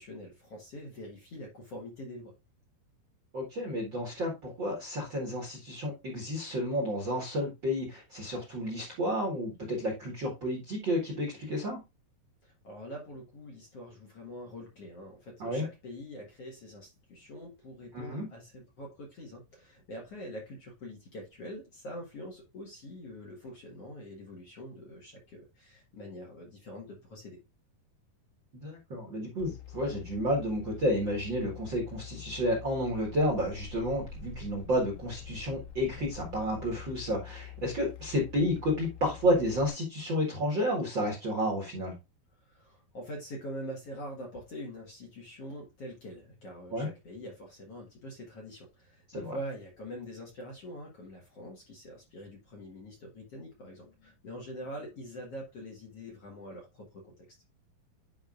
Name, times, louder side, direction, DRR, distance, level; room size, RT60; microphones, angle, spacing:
voice 1, 0.0-2.3 12.4-27.4 42.4-57.3, equal, 50° left, 2.0 m, -44 dB
voice 2, 3.3-11.8 15.4-15.6 17.9-18.3 28.6-41.9 46.7-46.9 49.1-49.4, equal, 45° right, 1.6 m, -31 dB
sound 1, 29.4-39.7, left 8 dB, 80° left, 2.9 m, -46 dB
10.0 x 5.2 x 2.5 m
omnidirectional pair, 4.6 m